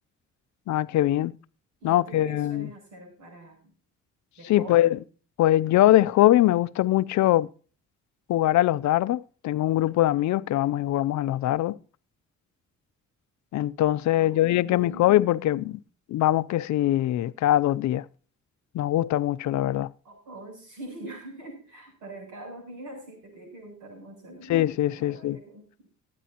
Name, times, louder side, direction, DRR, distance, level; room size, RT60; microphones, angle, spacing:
voice 1, 0.7-1.3 1.8-2.7 4.5-4.9 5.4-7.5 8.3-11.8 13.5-15.8 16.1-18.0 18.7-19.9 24.5-25.4, left 14 dB, 70° left, 0.5 m, -22 dB
voice 2, 1.8-3.7 4.4-5.1 14.1-15.1 20.0-24.6 24.9-25.9, right 1 dB, 80° right, 7.8 m, -44 dB
22.0 x 9.5 x 2.9 m
cardioid pair, 90°, 30 cm